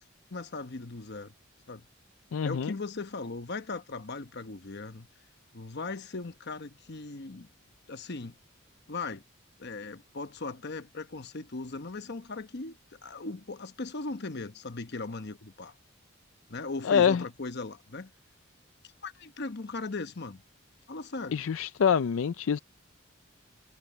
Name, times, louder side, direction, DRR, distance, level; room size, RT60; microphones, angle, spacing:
voice 1, 0.3-1.3 1.7-1.8 2.4-5.1 5.5-7.5 7.9-8.4 8.9-9.2 9.6-15.7 16.5-18.1 19.0-20.4 20.9-21.4, left 3 dB, 55° left, 1.0 m, -38 dB
voice 2, 2.3-2.7 16.8-17.2 21.3-22.6, left 7 dB, 75° left, 0.4 m, -25 dB
head